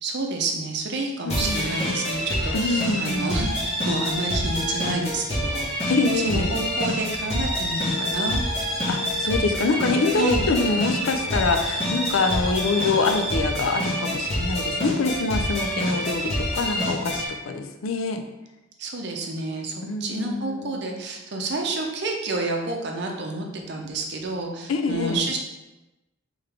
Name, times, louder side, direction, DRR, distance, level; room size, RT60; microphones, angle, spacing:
voice 1, 0.0-5.7 6.1-8.4 10.1-10.4 18.8-25.4, right 2 dB, 55° right, 2 dB, 0.6 m, -29 dB
voice 2, 1.2-1.9 2.5-3.3 5.9-6.6 8.9-18.2 19.8-20.8 24.7-25.2, left 3 dB, 80° left, 6 dB, 0.5 m, -25 dB
sound 1, 1.3-17.3, equal, 30° left, 1.3 m, -27 dB
3.7 x 3.5 x 3.4 m, 0.99 s
head